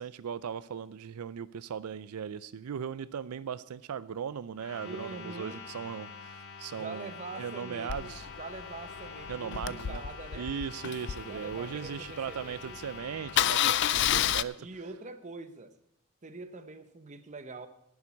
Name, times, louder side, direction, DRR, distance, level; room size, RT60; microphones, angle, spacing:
voice 1, 0.0-8.3 9.3-10.0 10.3-14.6, right 7 dB, 90° right, 16 dB, 0.4 m, -38 dB
sound 1, 4.5-13.4, left 5 dB, 70° left, 2.1 m, -46 dB
voice 2, 4.8-5.7 6.7-10.5 11.3-12.8 14.1-15.8 16.2-17.7, right 3 dB, 35° right, 10 dB, 0.8 m, -44 dB
Engine starting, 7.9-12.1 12.5-12.6 12.8-13.0 13.3-14.4, left 12 dB, 55° left, 0.4 m, -30 dB
10.5 x 7.2 x 8.3 m, 0.76 s
head